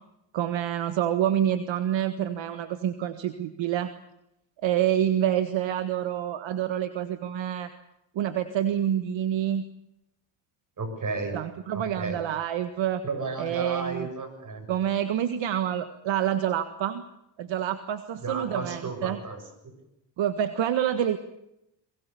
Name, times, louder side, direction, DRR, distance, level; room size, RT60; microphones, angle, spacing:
voice 1, 0.3-3.9 4.6-7.7 8.2-9.6 11.3-13.0 13.4-14.1 14.7-17.0 17.4-19.2 20.2-21.2, right 10 dB, 70° right, 9 dB, 1.7 m, -27 dB
voice 2, 10.8-11.4 11.7-12.2 13.0-14.7 18.2-19.7, right 3 dB, 40° right, 8 dB, 7.2 m, -33 dB
22.5 x 22.0 x 6.9 m, 0.81 s
cardioid pair, 90°, 48 cm